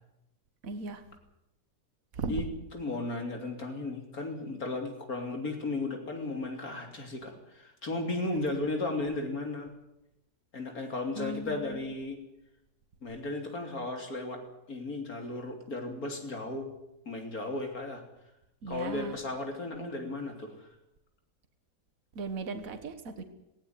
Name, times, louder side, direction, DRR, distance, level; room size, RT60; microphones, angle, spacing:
voice 1, 0.6-1.0 2.1-2.4 11.2-11.9 18.6-19.2 22.2-23.2, right 3 dB, 60° right, 8 dB, 2.0 m, -37 dB
voice 2, 2.7-9.7 10.5-12.2 13.0-14.4 14.7-16.7 17.1-18.0 18.7-20.7, left 2 dB, 65° left, 4 dB, 3.6 m, -35 dB
18.0 x 17.5 x 9.5 m, 0.89 s
omnidirectional pair, 1.7 m